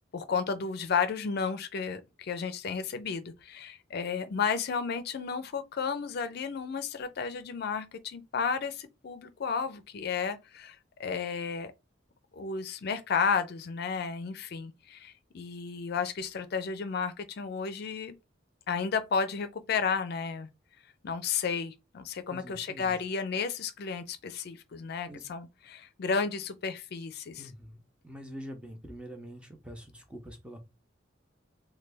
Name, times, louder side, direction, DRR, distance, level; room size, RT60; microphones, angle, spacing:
voice 1, 0.1-11.7 12.3-18.2 18.7-20.5 21.0-27.4, left 5 dB, 55° left, 0.4 m, -32 dB
voice 2, 22.3-23.0 25.1-25.2 27.4-30.6, equal, 5° right, 0.6 m, -45 dB
3.2 x 2.2 x 3.3 m
head